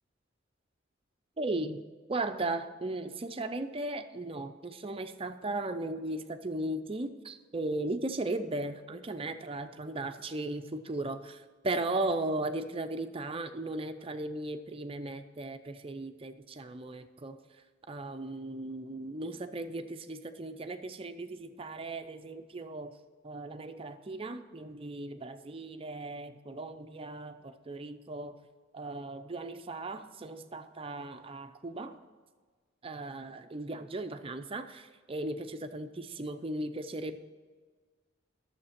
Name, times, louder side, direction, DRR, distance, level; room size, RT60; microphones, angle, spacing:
voice 1, 1.4-1.8 2.1-17.4 17.9-22.9 23.2-28.4 28.7-32.0 32.8-37.2, right 2 dB, 30° right, 8 dB, 0.6 m, -37 dB
11.5 x 7.2 x 5.9 m, 1.5 s
head